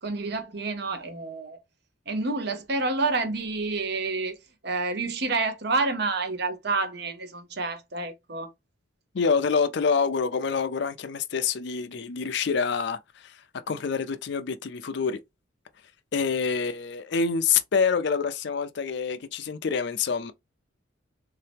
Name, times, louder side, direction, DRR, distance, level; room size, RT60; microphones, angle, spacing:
voice 1, 0.0-1.6 2.1-4.4 4.6-8.5, right 3 dB, 55° right, 0.8 m, -28 dB
voice 2, 9.1-13.4 13.7-15.2 16.1-20.3, left 5 dB, 60° left, 0.4 m, -26 dB
3.9 x 2.8 x 3.3 m
head